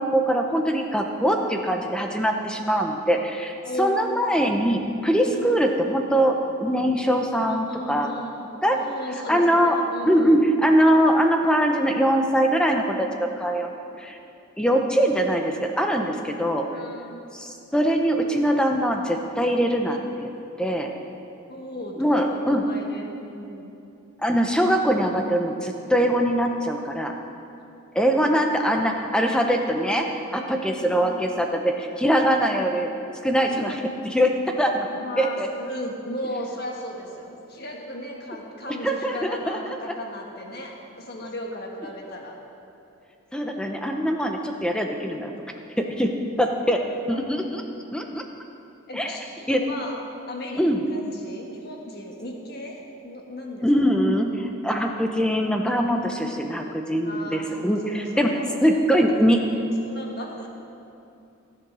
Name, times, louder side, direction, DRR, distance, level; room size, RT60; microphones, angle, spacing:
voice 1, 0.0-8.1 8.6-8.8 9.3-9.8 10.0-13.7 14.0-14.2 14.6-16.7 17.3-20.3 20.6-20.9 22.0-22.6 24.2-27.1 27.9-32.9 33.2-34.3 34.6-34.9 35.2-35.5 38.8-39.6 43.3-45.3 45.8-46.1 46.4-47.6 47.9-48.2 48.9-49.1 49.5-49.6 50.6-50.8 53.6-58.3 58.6-59.4, equal, 5° left, 3 dB, 0.7 m, -22 dB
voice 2, 3.6-4.2 5.2-5.6 7.4-10.4 16.7-17.4 21.5-23.7 27.9-28.1 30.7-31.2 34.8-42.3 47.1-47.2 48.9-50.0 50.3-54.0 57.0-59.2 59.5-60.5, left 1 dB, 50° left, 1 dB, 1.5 m, -36 dB
15.0 x 7.5 x 6.2 m, 2.7 s
head